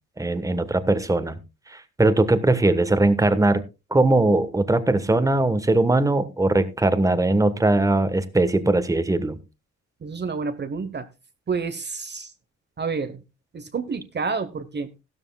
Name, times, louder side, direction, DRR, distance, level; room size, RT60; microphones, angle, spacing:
voice 1, 0.2-1.4 1.7-3.6 3.9-9.4, right 2 dB, 10° right, 11 dB, 1.3 m, -20 dB
voice 2, 10.0-11.1 11.5-12.3 12.8-13.2 13.5-14.9, right 5 dB, 35° right, 9 dB, 1.1 m, -29 dB
14.5 x 13.0 x 2.3 m, 0.27 s
cardioid pair, 90°, 30 cm